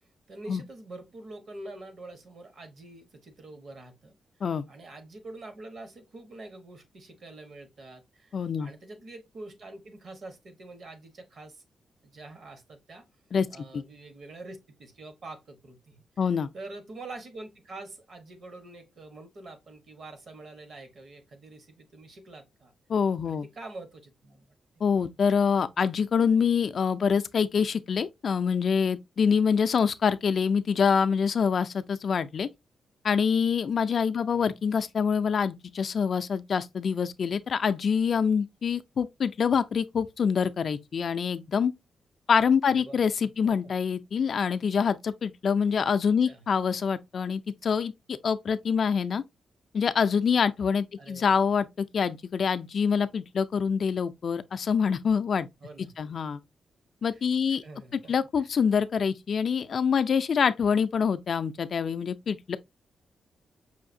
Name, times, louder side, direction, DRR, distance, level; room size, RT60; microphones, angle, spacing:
voice 1, 0.3-4.2 4.7-11.6 12.0-13.0 13.5-16.0 16.5-22.7 23.2-24.5 34.3-34.6 42.7-43.0 43.4-43.5 46.3-46.4 51.0-51.5 55.6-56.1 57.1-57.2 57.6-58.1, right 2 dB, 50° right, 1.0 m, -45 dB
voice 2, 8.3-8.7 13.3-13.5 13.7-13.8 16.2-16.5 22.9-23.5 24.8-32.5 33.0-41.7 42.3-49.2 49.7-55.5 56.0-56.4 57.0-57.6 58.1-62.6, left 6 dB, 50° left, 0.3 m, -25 dB
5.6 x 2.6 x 2.6 m
wide cardioid pair, 140°, 0 cm